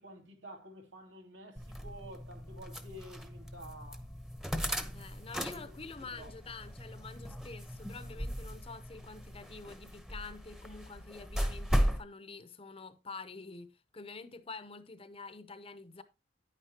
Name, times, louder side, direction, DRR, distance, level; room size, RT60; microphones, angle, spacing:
voice 1, 0.0-4.0 4.5-5.0 5.5-5.7 6.2-6.3, equal, 75° right, 2.4 m, -51 dB
sound 1, 1.6-12.0, equal, ahead, 0.9 m, -37 dB
voice 2, 4.9-16.0, left 4 dB, 30° left, 0.7 m, -47 dB
10.0 x 9.3 x 2.8 m
head